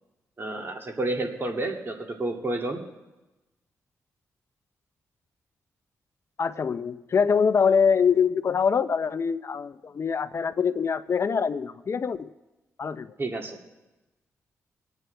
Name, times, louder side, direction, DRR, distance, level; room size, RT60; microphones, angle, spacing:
voice 1, 0.4-2.8 13.2-13.6, right 2 dB, 40° right, 1 dB, 2.5 m, -30 dB
voice 2, 6.4-12.3 12.8-13.1, left 6 dB, 50° left, 13 dB, 0.6 m, -24 dB
25.5 x 9.1 x 3.4 m, 1.0 s
cardioid pair, 60°, 6 cm